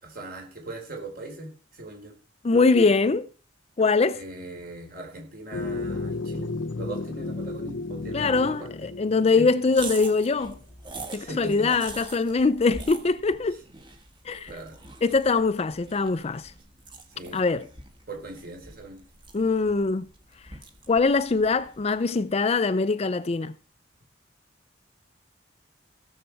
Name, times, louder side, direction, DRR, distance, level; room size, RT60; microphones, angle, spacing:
voice 1, 0.0-2.1 4.1-8.7 9.4-9.5 11.1-11.7 14.4-14.8 17.1-17.4 18.1-19.0, right 2 dB, 50° right, 4.0 m, -39 dB
voice 2, 2.4-3.3 3.8-4.2 8.1-10.6 11.1-13.6 14.2-14.5 15.0-16.5 17.3-17.7 19.3-20.1 20.9-23.5, left 4 dB, 35° left, 0.4 m, -23 dB
sound 1, 5.5-10.1, left 3 dB, 75° left, 0.8 m, -33 dB
sound 2, 9.7-22.2, right 3 dB, 25° right, 1.4 m, -44 dB
16.5 x 7.3 x 4.6 m
head